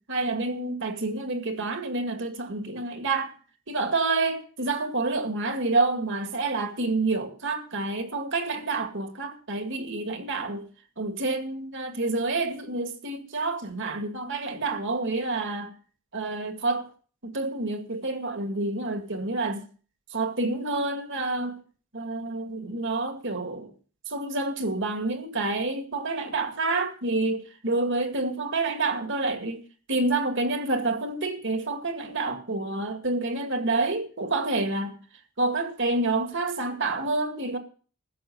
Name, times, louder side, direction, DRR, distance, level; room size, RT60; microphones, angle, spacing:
voice 1, 0.1-3.3 3.7-10.6 11.0-15.7 16.1-16.9 17.2-19.6 20.1-21.6 21.9-23.7 24.1-29.6 29.9-35.0 35.4-37.6, right 3 dB, 60° right, 2.1 m, -28 dB
15.0 x 6.3 x 7.9 m
head